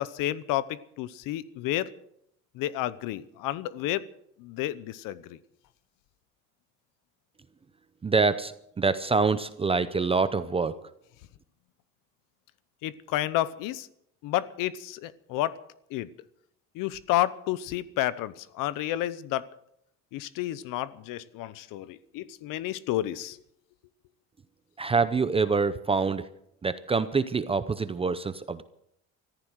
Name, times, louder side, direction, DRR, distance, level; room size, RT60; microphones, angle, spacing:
voice 1, 0.0-1.9 2.5-4.0 4.4-5.4 12.8-13.9 14.2-15.6 15.9-16.1 16.7-19.5 20.1-23.4, left 14 dB, 75° left, 17 dB, 0.9 m, -30 dB
voice 2, 8.0-10.8 24.8-26.3 26.6-28.6, right 4 dB, 15° right, 12 dB, 0.6 m, -26 dB
14.5 x 14.5 x 6.4 m, 0.74 s
cardioid pair, 140°, 33 cm